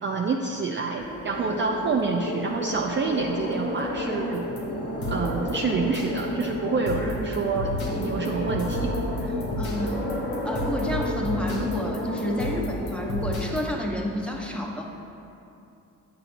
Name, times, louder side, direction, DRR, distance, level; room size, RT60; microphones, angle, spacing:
voice 1, 0.0-4.5 5.1-7.7 8.0-8.9 9.2-9.3, right 4 dB, 30° right, 1 dB, 0.5 m, -27 dB
sound 1, 1.0-13.6, equal, 30° left, 1.4 m, -32 dB
sound 2, 4.3-13.7, left 1 dB, 70° left, 1.2 m, -33 dB
voice 2, 9.6-10.0 10.4-14.9, left 1 dB, 5° left, -1 dB, 1.0 m, -30 dB
8.6 x 6.0 x 2.7 m, 2.6 s
hypercardioid pair, 55°, 37 cm